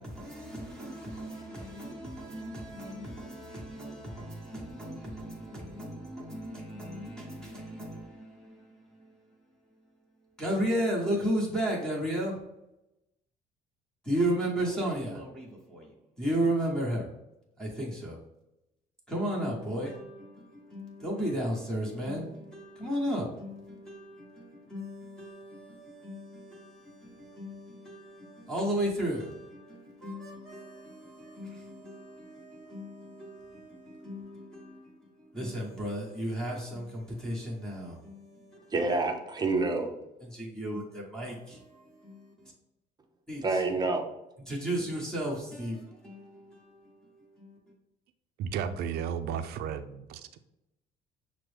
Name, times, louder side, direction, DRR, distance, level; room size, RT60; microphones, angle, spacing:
voice 1, 0.0-8.0 10.4-12.3 14.1-15.5 16.2-17.0 17.6-18.1 19.1-20.2 20.7-22.3 22.5-24.1 24.7-25.6 26.0-26.3 26.5-26.6 27.4-28.0 28.5-29.4 30.0-30.8 31.4-32.0 32.7-33.4 34.0-34.6 35.4-36.8 37.2-37.9 40.6-41.3 43.3-43.6 44.5-45.7 46.0-46.1, right 1 dB, 5° left, 1.1 m, -33 dB
voice 2, 38.7-40.0 43.4-44.1, right 3 dB, 25° right, 0.6 m, -28 dB
voice 3, 48.4-50.4, right 7 dB, 70° right, 0.4 m, -34 dB
5.8 x 2.1 x 3.2 m
cardioid pair, 110°, 17 cm